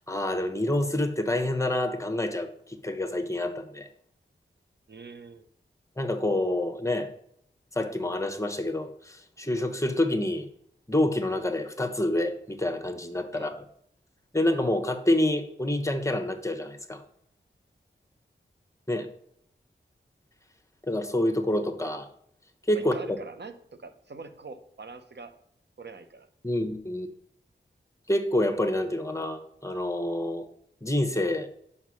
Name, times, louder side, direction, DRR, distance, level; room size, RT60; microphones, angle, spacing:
voice 1, 0.0-3.9 6.0-7.1 7.8-10.5 10.9-13.6 14.3-17.0 18.9-19.1 20.9-22.1 22.7-23.2 26.4-27.1 28.1-30.5 30.8-31.5, left 1 dB, 15° left, 6 dB, 1.0 m, -27 dB
voice 2, 4.9-5.5 13.3-13.5 22.7-25.3 25.8-26.3, right 4 dB, 60° right, 9 dB, 0.8 m, -44 dB
5.5 x 5.1 x 6.2 m, 0.67 s
cardioid pair, 45°, 20 cm